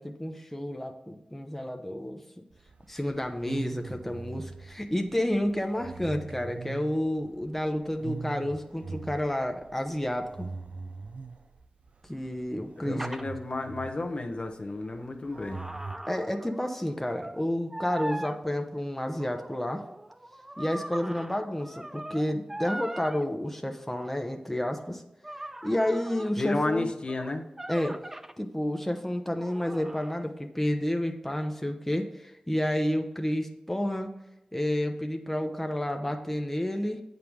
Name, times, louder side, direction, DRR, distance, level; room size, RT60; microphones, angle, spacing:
voice 1, 0.0-2.4 2.9-10.5 12.1-13.1 16.1-19.8 20.6-25.0 25.6-26.9 27.7-28.0 28.4-34.1 34.5-37.0, left 1 dB, 10° left, 4 dB, 0.8 m, -30 dB
sound 1, 2.5-16.0, right 4 dB, 70° right, 0.6 m, -42 dB
voice 2, 12.8-15.6 26.4-27.4, left 2 dB, 50° left, 4 dB, 1.0 m, -31 dB
sound 2, 13.0-13.3 14.8-16.9 17.2-17.4 17.7-18.4 19.2-23.3 24.0-24.2 25.2-28.3 29.4-30.3, right 1 dB, 15° right, 0.4 m, -40 dB
8.6 x 5.3 x 4.7 m, 0.91 s
wide cardioid pair, 65°, 2 cm